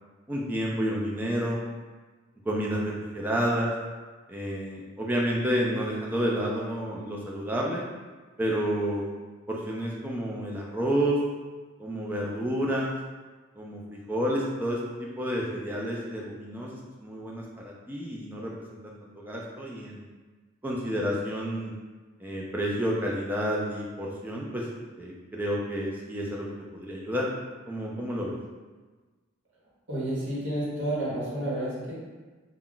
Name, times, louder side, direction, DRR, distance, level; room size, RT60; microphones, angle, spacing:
voice 1, 0.3-1.6 2.5-3.7 4.3-7.8 8.4-9.1 9.5-11.2 11.8-13.0 13.6-14.8 15.2-18.5 18.8-20.1 20.6-21.7 22.2-24.6 25.0-26.5 26.7-27.3 27.7-28.3, equal, 10° right, -3 dB, 0.3 m, -30 dB
voice 2, 29.9-31.9, right 1 dB, 55° right, -7 dB, 1.0 m, -30 dB
2.3 x 2.1 x 3.7 m, 1.3 s
head